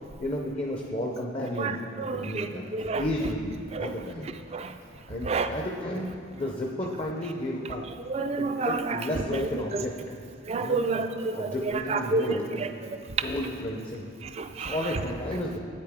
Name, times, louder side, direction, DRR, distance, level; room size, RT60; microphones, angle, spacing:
voice 1, 0.2-2.6 3.0-4.3 5.1-7.8 8.4-9.9 10.6-11.1 11.3-12.7 13.2-14.1 14.6-15.6, left 1 dB, 30° left, 0 dB, 0.5 m, -32 dB
voice 2, 1.6-3.1 3.7-3.9 4.5-4.8 5.2-5.5 8.0-9.9 10.5-12.7 14.2-14.8, right 4 dB, 30° right, 8 dB, 0.3 m, -30 dB
8.6 x 8.2 x 3.5 m, 2.4 s
head